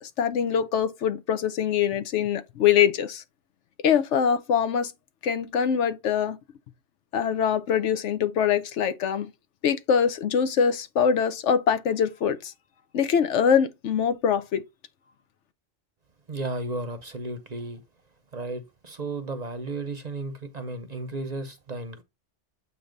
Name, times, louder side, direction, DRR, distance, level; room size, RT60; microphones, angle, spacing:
voice 1, 0.0-3.2 3.8-4.9 5.2-6.4 7.1-9.3 9.6-12.5 12.9-14.6, left 7 dB, 75° left, 1.0 m, -23 dB
voice 2, 16.3-17.8 18.3-22.0, right 2 dB, 40° right, 0.7 m, -34 dB
7.8 x 2.8 x 5.1 m
omnidirectional pair, 1.3 m